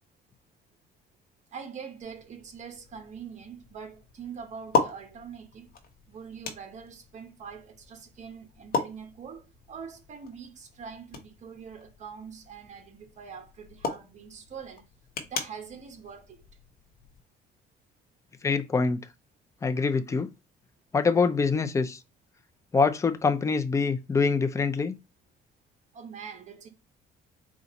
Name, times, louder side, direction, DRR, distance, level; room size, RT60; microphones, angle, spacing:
voice 1, 1.5-5.7 6.1-14.8 15.3-16.4 25.9-26.7, right 6 dB, 45° right, 1.0 m, -43 dB
sound 1, 2.0-17.2, left 5 dB, 60° left, 1.0 m, -37 dB
voice 2, 18.4-19.0 19.6-20.3 20.9-22.0 22.7-24.9, left 4 dB, 20° left, 0.5 m, -24 dB
4.1 x 2.4 x 3.9 m
cardioid pair, 110°, 17 cm